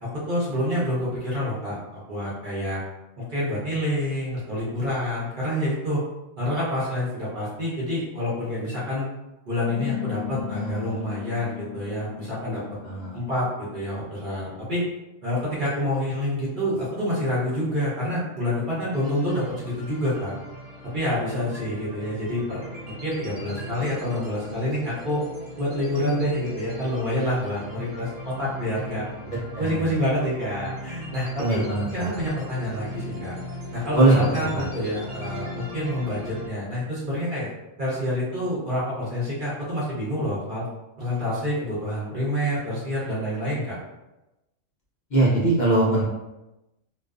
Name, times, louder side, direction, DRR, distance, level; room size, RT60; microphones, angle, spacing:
voice 1, 0.0-2.8 3.2-6.0 6.4-9.1 9.5-12.6 13.1-14.8 15.2-20.3 20.9-25.2 25.6-29.0 29.6-31.6 31.9-33.3 33.7-37.5 37.8-40.7 41.0-43.8, left 1 dB, 45° right, -8 dB, 0.8 m, -27 dB
sound 1, 9.7-14.6, left 12 dB, 5° left, 0.7 m, -36 dB
voice 2, 10.3-11.0 12.8-13.2 29.5-29.9 31.3-32.2 33.9-34.2 34.5-34.6 45.1-46.0, right 2 dB, 75° left, -7 dB, 0.4 m, -22 dB
sound 2, 18.9-36.5, equal, 65° right, 1.0 m, -38 dB
2.4 x 2.3 x 2.3 m, 0.99 s
omnidirectional pair, 1.4 m